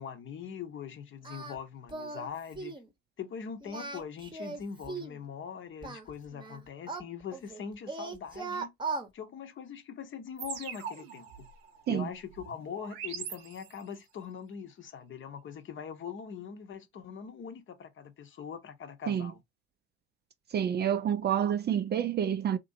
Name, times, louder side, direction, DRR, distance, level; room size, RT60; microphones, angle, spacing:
voice 1, 0.0-2.7 3.2-8.7 9.1-11.5 11.9-19.4, left 7 dB, 40° left, 0.8 m, -42 dB
Singing, 1.2-1.6 1.9-2.3 2.6-2.9 3.6-5.2 5.8-7.6 7.9-9.1, right 4 dB, 15° right, 0.9 m, -38 dB
sound 1, 10.4-14.0, right 8 dB, 80° right, 0.8 m, -43 dB
voice 2, 20.5-22.6, right 9 dB, 35° right, 0.4 m, -28 dB
2.9 x 2.6 x 2.6 m
hypercardioid pair, 65°, 31 cm